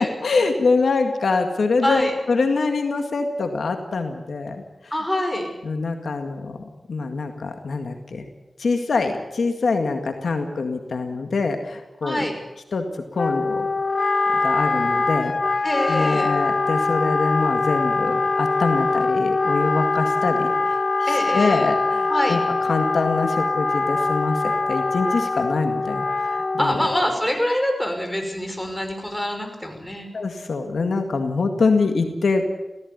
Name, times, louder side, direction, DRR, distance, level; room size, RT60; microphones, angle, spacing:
voice 1, 0.0-4.6 5.6-8.3 8.6-12.3 12.7-12.9 13.1-13.7 14.3-15.4 15.9-26.9 30.1-32.6, left 4 dB, 80° left, 6 dB, 1.9 m, -24 dB
voice 2, 1.8-2.1 4.9-5.5 12.0-12.3 15.6-16.3 21.1-21.7 22.1-22.4 26.6-30.1, left 1 dB, 10° left, 4 dB, 5.8 m, -25 dB
Wind instrument woodwind instrument, 13.2-27.2, left 3 dB, 55° left, 0.9 m, -23 dB
17.0 x 16.0 x 9.6 m, 1.0 s
cardioid pair, 50°, 0 cm